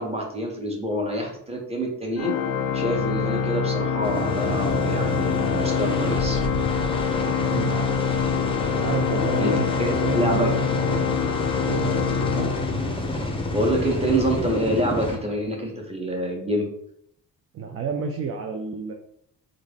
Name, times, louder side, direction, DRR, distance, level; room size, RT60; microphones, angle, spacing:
voice 1, 0.0-2.4 2.7-6.4 9.4-9.5 9.8-10.5 13.5-16.7, right 1 dB, 10° right, 0 dB, 1.3 m, -26 dB
Organ, 2.2-13.3, left 7 dB, 45° left, 0.4 m, -25 dB
sound 1, 4.0-15.2, left 2 dB, 10° left, 0.8 m, -29 dB
voice 2, 7.4-7.9 8.8-9.7 10.0-11.1 11.6-12.5 17.5-18.9, right 6 dB, 30° right, 4 dB, 0.5 m, -31 dB
3.6 x 2.4 x 3.5 m, 0.70 s
figure-of-eight pair, 40°, 48 cm